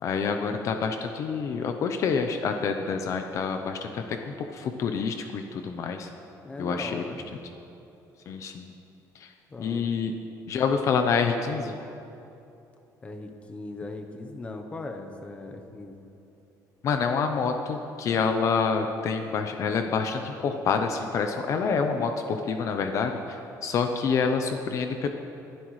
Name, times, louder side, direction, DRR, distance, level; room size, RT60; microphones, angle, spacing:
voice 1, 0.0-6.1 6.6-7.1 8.3-8.7 9.1-9.3 9.6-10.1 10.5-11.7 16.8-25.1, left 5 dB, 45° left, 6 dB, 0.7 m, -27 dB
voice 2, 6.4-7.2 9.5-10.0 13.0-16.1, left 2 dB, 20° left, 4 dB, 0.9 m, -39 dB
19.5 x 11.5 x 3.2 m, 2.8 s
cardioid pair, 160°, 7 cm